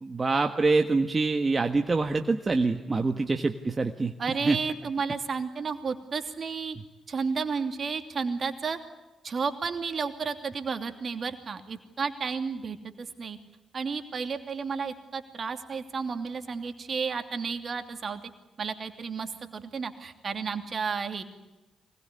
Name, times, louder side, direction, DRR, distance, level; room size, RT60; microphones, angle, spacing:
voice 1, 0.0-4.1 4.4-4.6, right 3 dB, 35° right, 5 dB, 1.5 m, -25 dB
voice 2, 4.2-6.8 7.1-8.8 9.2-13.4 13.7-18.2 18.6-21.2, right 5 dB, 50° right, 7 dB, 2.8 m, -32 dB
24.5 x 20.5 x 9.8 m, 1.1 s
hypercardioid pair, 45°, 0 cm